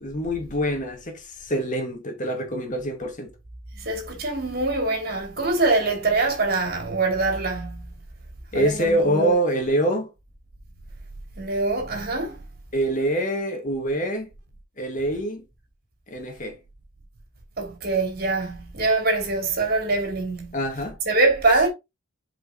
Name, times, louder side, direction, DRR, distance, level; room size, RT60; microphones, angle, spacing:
voice 1, 0.0-3.3 8.5-10.1 12.7-14.3 14.8-15.4 16.1-16.6 20.5-21.0, right 1 dB, 40° left, 2.0 m, -25 dB
voice 2, 3.8-7.9 8.5-9.3 11.4-12.4 17.6-20.6 21.1-21.7, right 3 dB, 50° right, 3.1 m, -24 dB
7.9 x 5.1 x 3.9 m
head